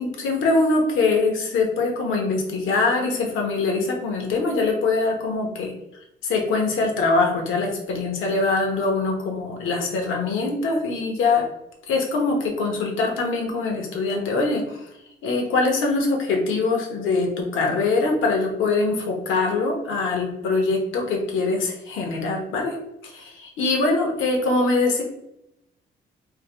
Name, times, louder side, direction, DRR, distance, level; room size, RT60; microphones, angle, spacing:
voice 1, 0.0-5.7 6.2-11.5 11.9-14.9 15.2-22.8 23.0-25.0, left 3 dB, 80° left, 2 dB, 0.8 m, -23 dB
3.4 x 2.1 x 3.2 m, 0.85 s
cardioid pair, 90°, 20 cm